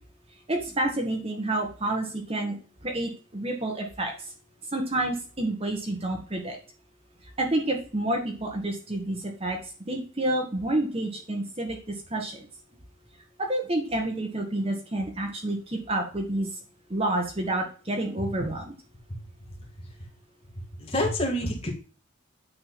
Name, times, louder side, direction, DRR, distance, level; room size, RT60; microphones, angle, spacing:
voice 1, 0.5-2.5 2.8-4.1 4.7-6.6 7.4-9.6 9.9-12.5 13.4-16.5 16.9-18.7, right 1 dB, 30° right, 2 dB, 1.4 m, -29 dB
voice 2, 20.5-21.7, left 1 dB, 30° left, -1 dB, 2.0 m, -29 dB
9.1 x 3.9 x 4.1 m, 0.37 s
head